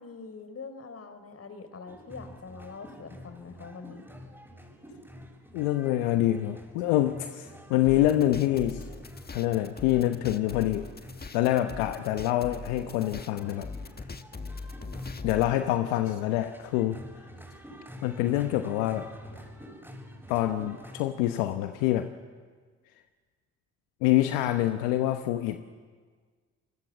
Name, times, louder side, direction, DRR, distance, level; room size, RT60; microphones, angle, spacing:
voice 1, 0.0-4.1, left 4 dB, 45° left, 9 dB, 4.3 m, -44 dB
sound 1, 1.9-21.1, equal, 5° right, 7.6 m, -47 dB
voice 2, 5.5-8.8 9.3-10.9 11.3-13.7 15.2-17.0 18.0-19.1 20.3-22.1 24.0-25.6, left 14 dB, 85° left, 8 dB, 1.1 m, -26 dB
sound 2, 7.8-15.5, left 4 dB, 25° left, 1.6 m, -41 dB
28.0 x 20.5 x 7.5 m, 1.5 s
hypercardioid pair, 50°, 34 cm